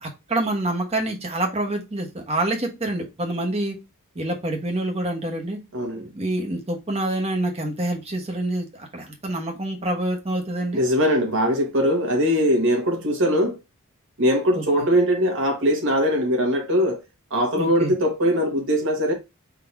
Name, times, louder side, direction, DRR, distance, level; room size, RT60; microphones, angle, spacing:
voice 1, 0.0-3.8 4.1-5.6 5.9-10.8 14.5-14.6 17.6-17.9, right 1 dB, 30° right, 1.1 m, -27 dB
voice 2, 5.7-6.1 10.7-13.6 14.2-17.0 17.3-19.1, equal, 60° right, 1.4 m, -21 dB
3.7 x 2.8 x 4.6 m
head